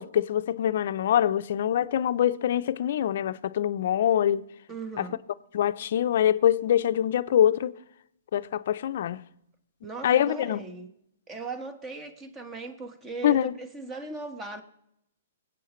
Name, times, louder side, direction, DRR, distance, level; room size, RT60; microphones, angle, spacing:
voice 1, 0.0-4.4 5.0-5.1 5.5-7.7 8.3-9.2 10.0-10.6 13.2-13.5, left 10 dB, 60° left, 0.5 m, -24 dB
voice 2, 4.7-5.2 9.8-10.9 11.3-14.6, right 3 dB, 20° right, 1.3 m, -38 dB
22.5 x 8.4 x 3.1 m
hypercardioid pair, 130°, 0 cm